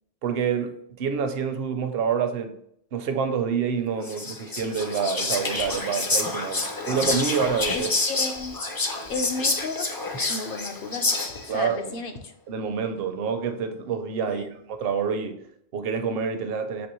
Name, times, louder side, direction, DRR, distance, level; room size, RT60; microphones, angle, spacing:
voice 1, 0.2-2.6 2.9-7.9 11.5-12.0 12.5-16.9, right 6 dB, 70° right, 0.8 m, -27 dB
Whispering, 4.0-11.6, left 3 dB, 30° left, 0.4 m, -28 dB
voice 2, 7.7-8.6 9.1-9.9 10.3-11.1 11.5-12.3 14.3-14.6, left 3 dB, 65° left, 0.8 m, -33 dB
6.1 x 2.9 x 2.9 m
omnidirectional pair, 1.0 m